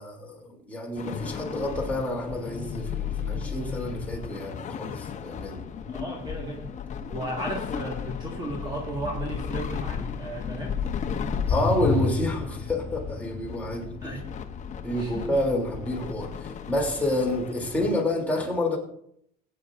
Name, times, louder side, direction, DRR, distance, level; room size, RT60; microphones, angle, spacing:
voice 1, 0.0-5.7 11.5-14.1 14.8-18.8, left 1 dB, 5° left, 3.1 m, -29 dB
sound 1, 1.0-18.0, left 6 dB, 35° left, 0.9 m, -33 dB
voice 2, 5.9-6.7 7.1-10.8 14.0-14.2 15.0-15.4, right 2 dB, 20° right, 1.9 m, -35 dB
19.5 x 9.4 x 2.6 m
cardioid pair, 120°, 21 cm